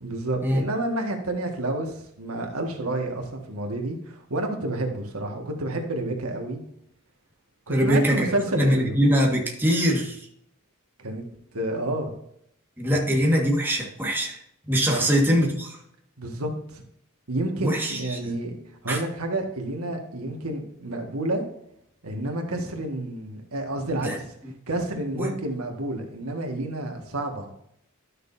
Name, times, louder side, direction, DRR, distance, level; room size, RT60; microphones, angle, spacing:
voice 1, 0.0-6.6 7.7-9.0 11.0-11.2 11.5-12.2 12.9-13.0 14.9-15.1 16.2-16.8 17.3-18.5 18.8-21.4 22.0-24.3 24.7-27.5, right 1 dB, 90° right, 3 dB, 1.8 m, -29 dB
voice 2, 7.7-8.3 8.6-10.2 12.8-14.4 14.7-15.8 17.6-18.2 18.9-19.0 24.0-24.2 25.1-25.3, equal, 10° right, -1 dB, 1.7 m, -22 dB
12.0 x 6.5 x 2.7 m, 0.72 s
head